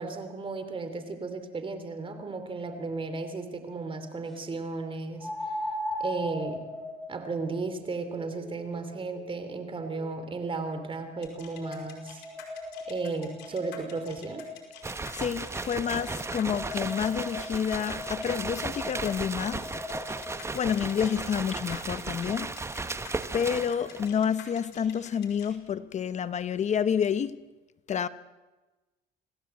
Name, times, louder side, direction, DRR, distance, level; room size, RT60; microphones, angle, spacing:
voice 1, 0.0-5.6 6.0-6.7 7.1-12.2 12.9-14.5, right 3 dB, 30° right, 9 dB, 3.1 m, -34 dB
sound 1, 2.6-2.7 5.2-10.4 11.1-14.8 15.8-20.4, left 1 dB, ahead, 6.0 m, -39 dB
sound 2, 11.2-25.5, left 10 dB, 85° left, 5.0 m, -48 dB
sound 3, 14.8-24.2, right 3 dB, 15° right, 1.0 m, -35 dB
voice 2, 15.1-19.7 20.5-22.6 23.3-27.4 27.9-28.1, left 8 dB, 45° left, 14 dB, 0.9 m, -29 dB
27.0 x 17.0 x 8.1 m, 1.2 s
cardioid pair, 110°, 17 cm